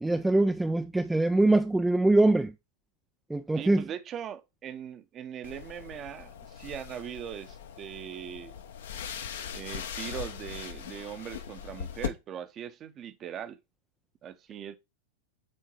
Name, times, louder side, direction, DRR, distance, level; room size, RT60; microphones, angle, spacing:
voice 1, 0.0-2.5 3.3-3.8, right 2 dB, 5° right, 0.3 m, -23 dB
voice 2, 3.5-8.5 9.5-13.6 14.2-14.8, right 9 dB, 30° right, 0.8 m, -40 dB
sound 1, 5.4-12.1, left 8 dB, 60° left, 0.8 m, -40 dB
8.6 x 3.7 x 4.6 m
figure-of-eight pair, 90°, 0 cm